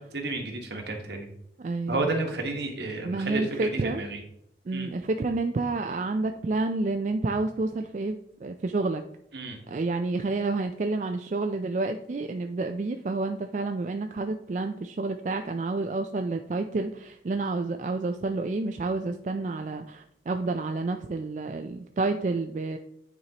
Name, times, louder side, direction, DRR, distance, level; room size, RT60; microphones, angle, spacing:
voice 1, 0.1-1.3 1.9-4.2 4.7-4.9 9.3-9.6, right 2 dB, 75° right, 2 dB, 1.3 m, -31 dB
voice 2, 1.6-2.0 3.0-4.0 4.7-9.0 9.7-22.8, right 3 dB, 45° right, 6 dB, 0.3 m, -29 dB
9.4 x 4.4 x 2.9 m, 0.73 s
head